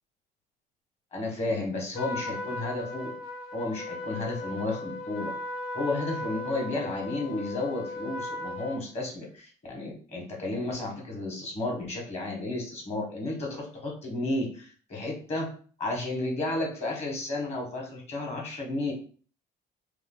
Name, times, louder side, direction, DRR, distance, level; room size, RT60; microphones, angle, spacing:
voice 1, 1.1-3.1 3.5-5.3 5.7-15.5 15.8-18.9, left 2 dB, 40° left, 0 dB, 1.5 m, -32 dB
Trumpet, 1.9-8.8, left 2 dB, 80° left, 0.5 m, -37 dB
3.0 x 2.3 x 3.8 m, 0.42 s
cardioid pair, 110°, 17 cm